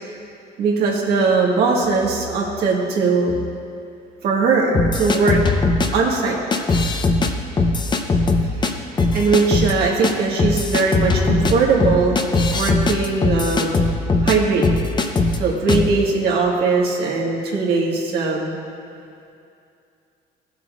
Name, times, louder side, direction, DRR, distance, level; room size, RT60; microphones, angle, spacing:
voice 1, 0.6-3.3 4.2-5.4 5.9-6.4 9.1-12.3 12.5-13.8 14.2-14.7 15.4-18.6, right 4 dB, 70° right, -2 dB, 1.7 m, -20 dB
sound 1, 4.7-5.9 6.5-7.3 7.6-8.7 9.0-9.7 10.0-10.1 10.4-14.4 14.6-15.4 15.7-15.9, left 3 dB, 25° left, 0.7 m, -19 dB
16.5 x 7.4 x 2.5 m, 2.5 s
cardioid pair, 110°, 17 cm